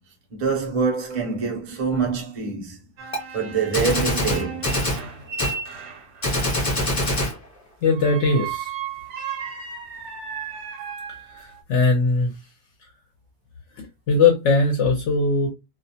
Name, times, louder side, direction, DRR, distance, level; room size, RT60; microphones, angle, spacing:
voice 1, 0.3-2.9 3.3-4.6, right 5 dB, 35° right, 0.6 m, -25 dB
sound 1, 3.0-6.4 7.9-11.6, right 7 dB, 65° right, 0.9 m, -35 dB
Gunshot gunfire, 3.1-3.2 3.7-5.0 5.4-5.6 6.2-7.4, left 1 dB, 30° left, 0.8 m, -24 dB
voice 2, 7.8-8.7 11.3-12.3 14.1-15.5, left 3 dB, 70° left, 0.9 m, -20 dB
2.4 x 2.1 x 2.7 m
omnidirectional pair, 1.4 m